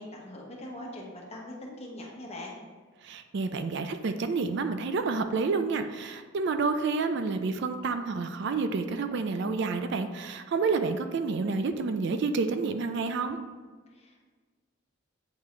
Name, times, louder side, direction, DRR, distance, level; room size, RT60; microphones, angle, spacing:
voice 1, 0.0-2.6 13.9-14.3, left 1 dB, 30° left, -2 dB, 1.1 m, -42 dB
voice 2, 3.0-13.4, right 4 dB, 60° right, 8 dB, 0.4 m, -29 dB
8.4 x 3.6 x 3.2 m, 1.5 s
head